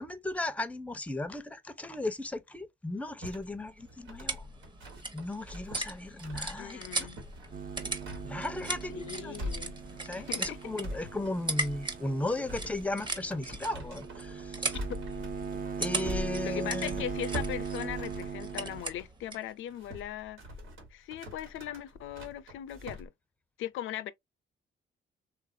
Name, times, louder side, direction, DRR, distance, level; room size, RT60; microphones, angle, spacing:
voice 1, 0.0-4.5 5.1-7.1 8.2-9.4 10.0-14.8 15.8-17.0, left 2 dB, 5° left, 0.5 m, -36 dB
sound 1, 3.2-19.1 19.5-23.1, equal, 85° right, 1.5 m, -44 dB
sound 2, 3.7-19.5, right 2 dB, 25° right, 0.9 m, -39 dB
voice 2, 6.6-7.2 8.9-9.8 10.2-10.9 14.9-15.0 16.4-20.4 20.9-23.1 23.6-24.1, left 11 dB, 80° left, 0.5 m, -39 dB
sound 3, 7.5-18.8, right 7 dB, 45° right, 0.6 m, -40 dB
3.4 x 2.4 x 2.6 m
cardioid pair, 90°, 20 cm